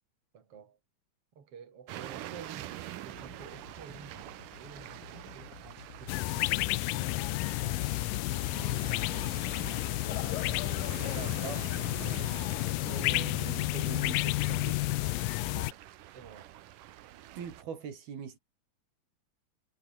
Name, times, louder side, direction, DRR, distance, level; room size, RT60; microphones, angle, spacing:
voice 1, 0.3-0.8 1.3-2.7 3.0-4.2 4.6-12.6 13.1-14.0 15.5-15.8 16.1-16.6, right 6 dB, 40° right, 4.0 m, -50 dB
sound 1, 1.9-17.6, right 14 dB, 70° right, 2.5 m, -47 dB
sound 2, 3.1-12.1, left 9 dB, 50° left, 2.3 m, -53 dB
sound 3, 6.1-15.7, left 20 dB, 80° left, 2.1 m, -31 dB
voice 2, 11.2-11.6 12.8-15.3 17.4-18.4, right 7 dB, 85° right, 5.6 m, -42 dB
omnidirectional pair, 4.3 m